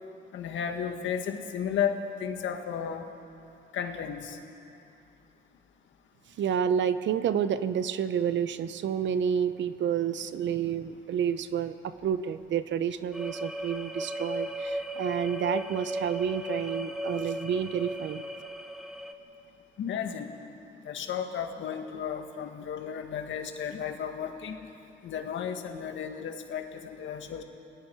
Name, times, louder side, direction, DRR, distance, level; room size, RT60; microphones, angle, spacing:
voice 1, 0.3-3.1 3.7-4.4 19.8-20.3 20.9-24.6 25.0-27.4, left 8 dB, 70° left, 5 dB, 1.8 m, -33 dB
voice 2, 6.4-18.2, right 8 dB, 70° right, 12 dB, 0.9 m, -29 dB
sound 1, 13.1-19.1, right 1 dB, ahead, 1.4 m, -36 dB
28.5 x 19.0 x 4.7 m, 2.7 s
cardioid pair, 90°, 20 cm